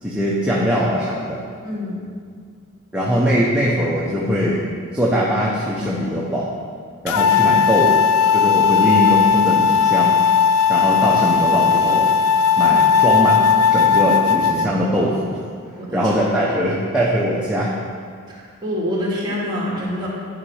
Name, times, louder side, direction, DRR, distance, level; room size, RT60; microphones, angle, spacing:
voice 1, 0.0-1.4 2.9-4.6 4.9-6.5 7.0-8.0 8.3-10.2 10.7-12.1 12.6-15.4 15.9-17.7, equal, 5° right, -6 dB, 0.8 m, -21 dB
voice 2, 1.6-2.0 15.8-16.0 16.4-16.7 18.3-20.1, left 1 dB, 20° right, -7 dB, 2.4 m, -26 dB
sound 1, 7.1-14.7, left 6 dB, 80° left, 0.4 m, -16 dB
10.5 x 5.2 x 4.9 m, 2.1 s
head